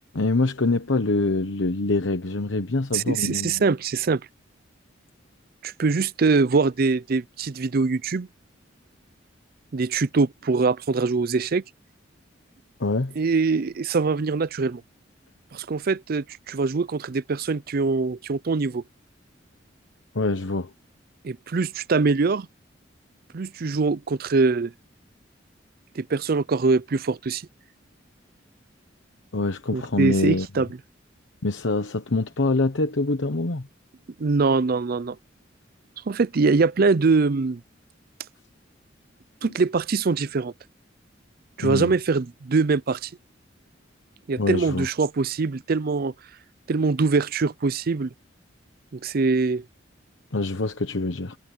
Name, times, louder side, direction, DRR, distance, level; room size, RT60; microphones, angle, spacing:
voice 1, 0.1-3.6 12.8-13.2 20.1-20.7 29.3-30.5 31.4-33.7 41.6-41.9 44.4-44.9 50.3-51.4, left 2 dB, 80° left, 1.1 m, -25 dB
voice 2, 2.9-4.2 5.6-8.3 9.7-11.6 13.2-14.8 15.5-18.8 21.2-22.5 23.3-24.7 26.0-27.4 29.7-30.7 34.2-35.2 36.1-37.6 39.4-40.5 41.6-43.1 44.3-46.1 46.7-48.1 48.9-49.6, right 4 dB, 50° right, 0.5 m, -23 dB
head